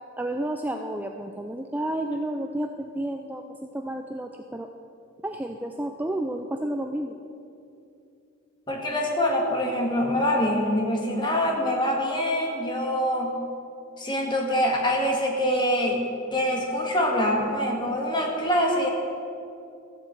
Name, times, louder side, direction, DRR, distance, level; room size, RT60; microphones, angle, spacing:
voice 1, 0.2-4.7 5.2-7.2, right 1 dB, 10° right, 4 dB, 0.4 m, -31 dB
voice 2, 8.7-13.4 14.0-16.0 16.3-18.9, equal, 20° left, 0 dB, 1.8 m, -24 dB
14.0 x 7.5 x 7.7 m, 2.6 s
head